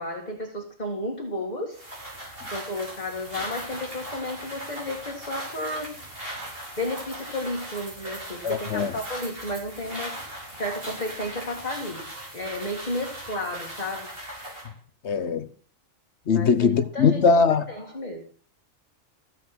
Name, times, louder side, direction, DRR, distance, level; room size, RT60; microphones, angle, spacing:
voice 1, 0.0-1.8 2.5-5.9 6.8-10.2 10.6-12.1 12.3-14.1 16.3-17.3 17.7-18.2, left 1 dB, 30° left, 2.0 m, -32 dB
sound 1, 1.7-14.7, right 1 dB, 45° right, 5.3 m, -38 dB
voice 2, 8.4-8.9 15.0-15.5 16.3-17.6, left 5 dB, 60° left, 1.1 m, -21 dB
15.0 x 7.5 x 5.9 m
omnidirectional pair, 1.4 m